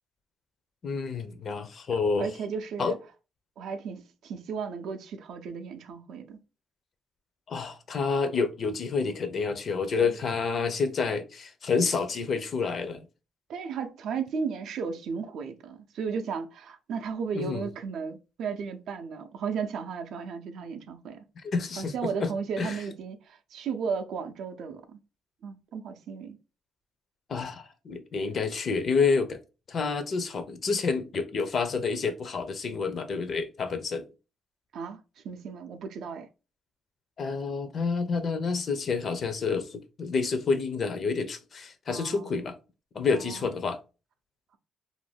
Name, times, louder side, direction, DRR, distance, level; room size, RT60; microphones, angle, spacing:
voice 1, 0.8-2.3 2.8-2.9 7.5-13.1 17.3-17.7 21.4-22.3 22.6-22.8 27.3-29.4 29.7-34.1 37.2-42.6 42.9-43.8, left 4 dB, 45° left, 0.4 m, -29 dB
voice 2, 1.9-3.0 3.6-6.4 9.9-10.1 13.5-21.2 21.8-25.0 25.4-26.4 34.7-36.3 41.9-42.3 43.1-43.5, right 6 dB, 80° right, 0.4 m, -35 dB
2.5 x 2.2 x 3.3 m
cardioid pair, 125°, 0 cm